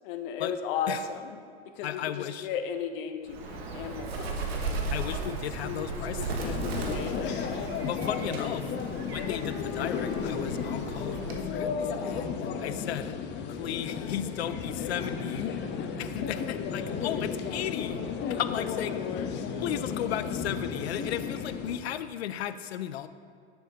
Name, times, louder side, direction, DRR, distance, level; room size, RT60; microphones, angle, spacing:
voice 1, 0.0-1.4 1.6-4.7 5.2-5.9 6.2-7.4 8.2-8.4 18.6-19.5, left 7 dB, 55° left, 7 dB, 0.9 m, -36 dB
voice 2, 1.8-2.5 4.9-6.6 7.8-8.6 9.1-13.2 13.5-15.5 16.0-18.0 18.3-18.9 19.6-23.1, left 10 dB, 80° left, 12 dB, 0.6 m, -35 dB
Bird, 3.3-11.6, right 3 dB, 75° right, 1.4 m, -36 dB
sound 1, 6.4-21.8, left 6 dB, 35° left, 0.9 m, -33 dB
10.5 x 6.6 x 4.0 m, 2.2 s
hypercardioid pair, 105°, 31 cm